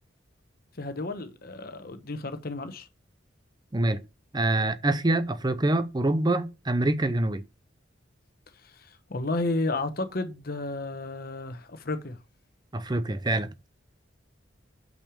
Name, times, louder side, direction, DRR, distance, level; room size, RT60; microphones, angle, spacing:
voice 1, 0.8-2.9 8.6-12.2, left 2 dB, 50° left, 1.0 m, -32 dB
voice 2, 4.3-7.4 12.7-13.5, right 2 dB, 20° right, 0.6 m, -25 dB
6.6 x 6.1 x 4.9 m
head